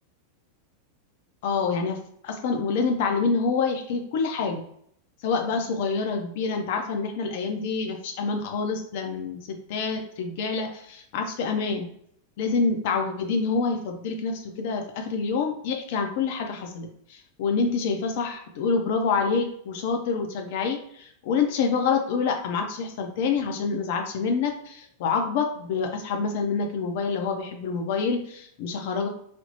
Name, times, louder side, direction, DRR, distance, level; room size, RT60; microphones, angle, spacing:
voice 1, 1.4-2.0 2.2-4.6 5.2-11.9 12.4-29.1, left 5 dB, 50° left, 4 dB, 0.4 m, -27 dB
3.3 x 2.0 x 2.7 m, 0.68 s
figure-of-eight pair, 90°, 0 cm